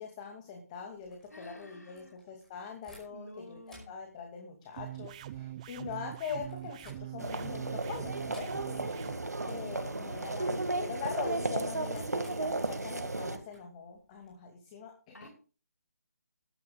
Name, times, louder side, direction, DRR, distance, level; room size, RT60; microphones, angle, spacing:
voice 1, 0.0-3.6 3.9-8.5 9.5-15.3, left 6 dB, 25° left, 3 dB, 2.5 m, -42 dB
sound 1, 1.0-3.4 3.6-7.4 8.3-9.0 9.2-9.4 9.7-14.3, left 1 dB, 5° left, 5.2 m, -60 dB
voice 2, 1.3-2.2 3.1-4.0 8.7-9.0 9.3-9.6 15.1-15.3, left 1 dB, 85° left, 0 dB, 5.1 m, -51 dB
sound 2, 4.8-9.2, right 13 dB, 25° right, 0.6 m, -43 dB
sound 3, 7.2-13.4, right 2 dB, 85° right, 2.0 m, -34 dB
21.0 x 10.5 x 2.4 m, 0.36 s
figure-of-eight pair, 150°, 9 cm